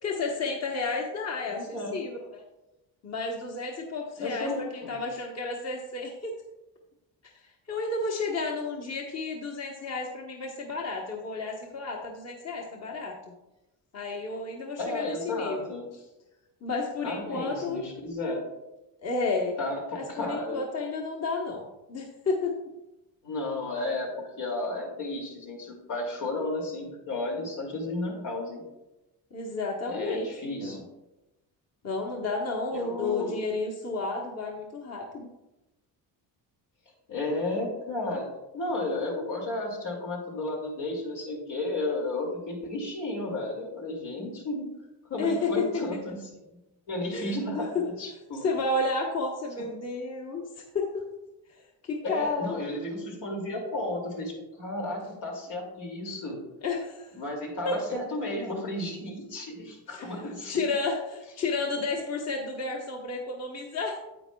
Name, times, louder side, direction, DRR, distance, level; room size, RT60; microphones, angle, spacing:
voice 1, 0.0-2.4 3.0-6.4 7.2-7.3 7.7-13.3 13.9-15.7 16.6-17.8 19.0-19.6 19.9-22.7 29.3-30.8 31.8-35.3 45.1-46.2 47.1-47.9 48.4-51.0 51.5-52.6 56.6-57.1 57.6-57.8 59.9-64.0, left 3 dB, 35° left, 0 dB, 1.1 m, -32 dB
voice 2, 1.5-1.9 4.2-4.9 14.8-15.8 17.0-18.4 19.6-20.6 23.2-24.1 24.4-28.6 29.9-30.8 32.7-33.3 37.1-38.3 38.5-44.7 45.1-46.2 46.9-48.5 52.0-56.4 57.1-60.6, left 2 dB, 75° left, -1 dB, 2.5 m, -33 dB
9.7 x 8.3 x 2.3 m, 0.99 s
cardioid pair, 115°, 43 cm